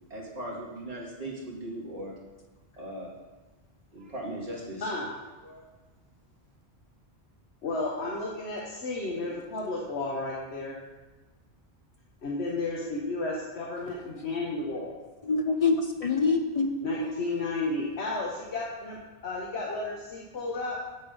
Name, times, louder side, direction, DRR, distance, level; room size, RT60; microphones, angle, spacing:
voice 1, 0.1-2.2 2.7-3.1 3.9-4.9 5.4-5.7, right 1 dB, 35° right, -5 dB, 2.3 m, -38 dB
voice 2, 7.6-10.8 12.2-15.0 16.8-20.8, left 2 dB, 75° left, -3 dB, 1.3 m, -32 dB
voice 3, 15.3-17.3, left 4 dB, 50° left, 4 dB, 0.4 m, -26 dB
7.6 x 6.9 x 5.3 m, 1.2 s
omnidirectional pair, 1.1 m